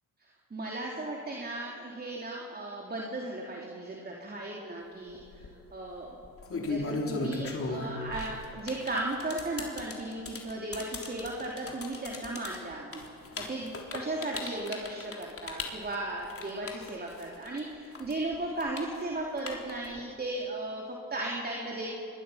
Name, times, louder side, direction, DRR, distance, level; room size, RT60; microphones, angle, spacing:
voice 1, 0.5-6.2 6.5-21.9, right 2 dB, 25° right, -1 dB, 3.2 m, -36 dB
sound 1, 5.1-5.5 6.2-17.6 17.9-20.0, left 3 dB, 35° left, 3.5 m, -37 dB
25.0 x 20.5 x 5.8 m, 2.7 s
supercardioid pair, 85°, 38 cm